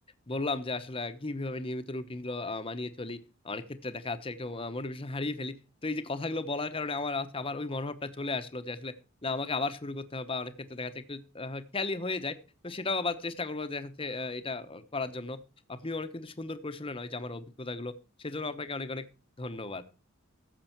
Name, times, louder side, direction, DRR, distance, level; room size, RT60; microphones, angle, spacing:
voice 1, 0.3-3.2 3.4-5.5 5.8-8.9 9.2-12.3 12.6-15.4 15.7-17.9 18.2-19.0 19.4-19.8, left 3 dB, 25° left, 11 dB, 0.9 m, -35 dB
14.5 x 6.9 x 4.5 m, 0.33 s
head